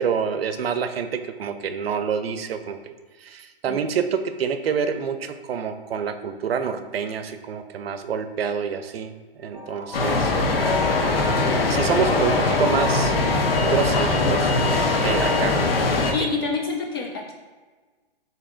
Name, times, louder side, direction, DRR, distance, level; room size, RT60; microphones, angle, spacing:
voice 1, 0.0-2.9 3.2-10.3 11.0-13.2 13.6-14.5 15.0-15.9, right 7 dB, 85° right, 9 dB, 0.5 m, -27 dB
sound 1, 9.5-15.9, left 3 dB, 15° right, 0.7 m, -34 dB
sound 2, 9.9-16.1, left 3 dB, 80° left, 0.9 m, -21 dB
voice 2, 16.1-17.3, left 4 dB, 25° left, 1 dB, 0.3 m, -27 dB
6.8 x 2.9 x 2.5 m, 1.4 s
hypercardioid pair, 145°, 29 cm